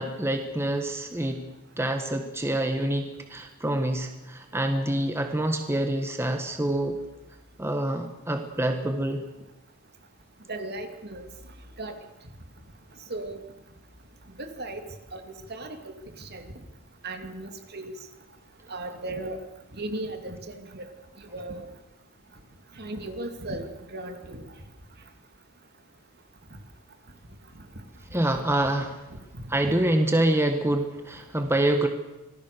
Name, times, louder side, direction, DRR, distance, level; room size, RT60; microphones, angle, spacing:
voice 1, 0.0-1.4 1.8-7.0 7.6-9.2 28.1-29.0 29.5-31.9, right 1 dB, 10° right, 6 dB, 1.6 m, -26 dB
voice 2, 10.5-11.3 11.8-12.0 13.1-13.4 14.4-14.8 15.1-15.2 15.5-16.4 17.0-17.9 18.7-19.4 19.7-20.8 21.3-21.7 22.8-24.4 29.6-29.7, right 2 dB, 50° right, 6 dB, 2.7 m, -36 dB
26.5 x 19.0 x 6.8 m, 1.0 s
head